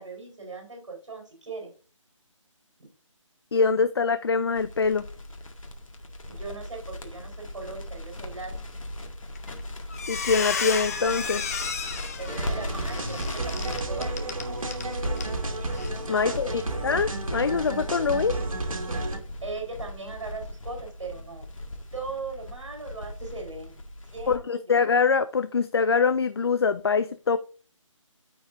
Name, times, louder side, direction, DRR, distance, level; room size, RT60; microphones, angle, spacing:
voice 1, 0.0-1.7 2.8-2.9 6.2-8.5 12.2-14.6 16.1-16.8 19.4-21.5 21.9-23.7 24.1-24.8, right 4 dB, 65° right, 4.3 m, -39 dB
voice 2, 3.5-5.1 10.1-11.4 16.1-16.5 16.8-18.3 24.3-27.4, left 5 dB, 50° left, 0.5 m, -24 dB
Crackle, 4.5-24.4, left 1 dB, 75° left, 1.9 m, -38 dB
Squeak, 9.4-9.6 9.9-14.9 15.2-15.3 15.7-15.9, left 6 dB, 30° left, 0.8 m, -32 dB
sound 1, 12.3-19.2, right 2 dB, 90° right, 2.0 m, -32 dB
14.0 x 4.7 x 2.6 m
figure-of-eight pair, 165°, 17 cm